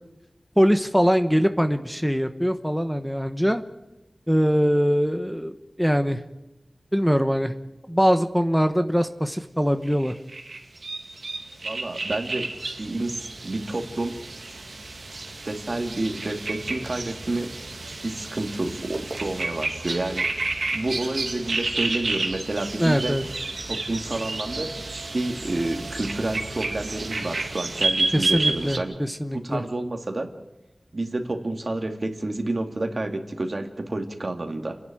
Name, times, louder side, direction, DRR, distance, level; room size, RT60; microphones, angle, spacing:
voice 1, 0.6-3.6 4.3-6.2 6.9-7.5 7.9-10.1 22.8-23.2 28.1-29.6, equal, ahead, 8 dB, 1.1 m, -22 dB
sound 1, 9.9-28.8, right 3 dB, 80° right, 2.4 m, -31 dB
voice 2, 11.6-12.5 12.8-14.1 15.5-17.5 18.0-23.2 23.7-28.9 29.3-30.3 30.9-34.8, right 2 dB, 55° right, 5 dB, 2.4 m, -29 dB
29.0 x 11.0 x 9.2 m, 1.0 s
wide cardioid pair, 60°, 0 cm